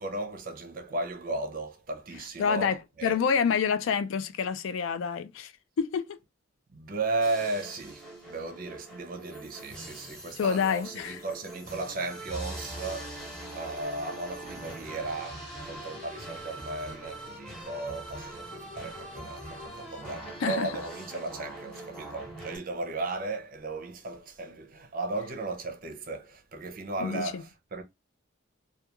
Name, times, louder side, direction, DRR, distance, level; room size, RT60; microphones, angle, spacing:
voice 1, 0.0-3.2 6.7-27.8, right 2 dB, 45° right, 0.5 m, -35 dB
voice 2, 2.4-5.5 5.8-6.2 10.4-11.2 20.4-20.7 27.0-27.4, left 6 dB, 75° left, 0.3 m, -27 dB
sound 1, 7.2-22.6, right 1 dB, 5° left, 0.7 m, -42 dB
2.3 x 2.2 x 2.9 m
head